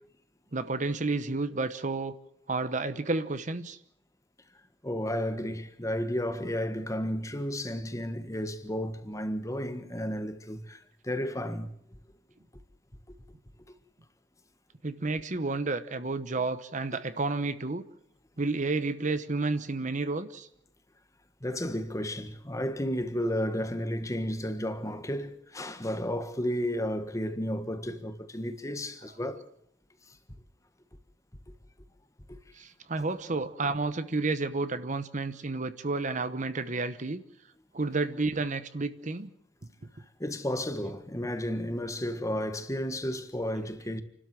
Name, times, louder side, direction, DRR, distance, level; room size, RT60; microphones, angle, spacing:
voice 1, 0.5-2.1 2.5-3.8 14.8-17.8 18.4-20.5 32.6-37.2 37.7-39.3, right 3 dB, 40° right, 1.0 m, -31 dB
voice 2, 4.8-11.7 21.4-29.4 32.3-32.4 40.2-44.0, equal, 15° left, 1.5 m, -32 dB
29.0 x 12.5 x 7.6 m
head